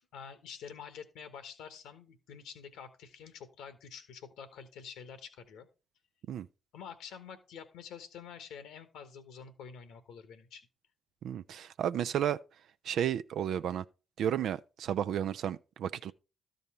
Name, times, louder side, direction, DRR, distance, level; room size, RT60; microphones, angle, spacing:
voice 1, 0.0-5.7 6.7-10.7, left 7 dB, 75° left, 1.2 m, -48 dB
voice 2, 11.2-12.4 12.8-13.8 14.2-16.1, right 10 dB, 70° right, 0.4 m, -32 dB
13.0 x 5.3 x 4.2 m
hypercardioid pair, 45°, 0 cm